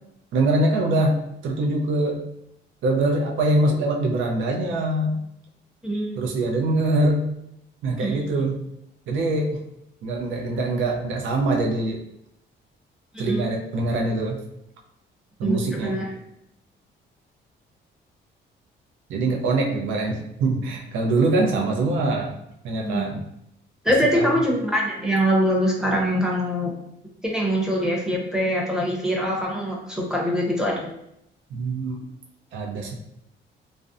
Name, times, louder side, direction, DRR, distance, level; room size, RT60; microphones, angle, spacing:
voice 1, 0.3-1.2 1.4-2.2 2.8-5.2 6.2-7.2 7.8-8.6 9.1-9.6 10.0-12.0 13.2-14.4 15.4-16.0 19.1-22.3 22.6-23.2 24.1-24.3 31.5-32.0 32.5-33.0, right 2 dB, 80° right, 0 dB, 0.5 m, -23 dB
voice 2, 5.8-6.3 8.0-8.2 13.1-13.4 15.4-16.1 22.8-23.1 23.8-26.7 27.2-30.9, equal, 5° right, -2 dB, 0.7 m, -23 dB
2.5 x 2.1 x 2.4 m, 0.78 s
cardioid pair, 90°, 20 cm